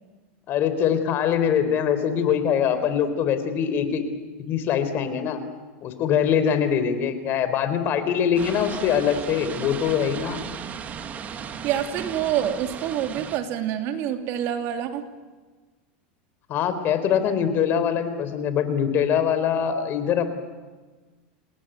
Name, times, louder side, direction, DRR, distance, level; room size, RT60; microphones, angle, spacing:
voice 1, 0.5-4.0 4.4-5.4 5.8-10.4 16.5-20.3, left 8 dB, 40° left, 10 dB, 4.0 m, -23 dB
sound 1, 8.3-13.4, right 7 dB, 30° right, 2.0 m, -36 dB
voice 2, 11.6-15.0, right 10 dB, 50° right, 6 dB, 2.8 m, -27 dB
28.5 x 18.5 x 9.2 m, 1.3 s
supercardioid pair, 130°, 5 cm